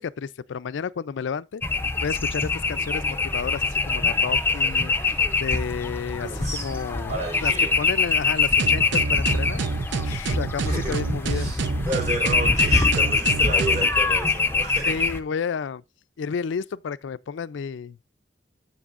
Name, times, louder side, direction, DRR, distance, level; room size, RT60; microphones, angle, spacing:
voice 1, 0.0-1.6 2.0-7.1 7.4-11.5 14.9-15.8 16.2-18.0, left 6 dB, 90° left, 0.4 m, -31 dB
sound 1, 1.6-15.2, left 4 dB, 10° left, 0.6 m, -24 dB
voice 2, 6.2-6.8 7.1-7.8 10.6-10.9 11.3-15.1, right 1 dB, 40° right, 4.1 m, -32 dB
sound 2, 8.6-13.9, right 4 dB, 80° right, 0.6 m, -28 dB
15.5 x 5.3 x 2.5 m
head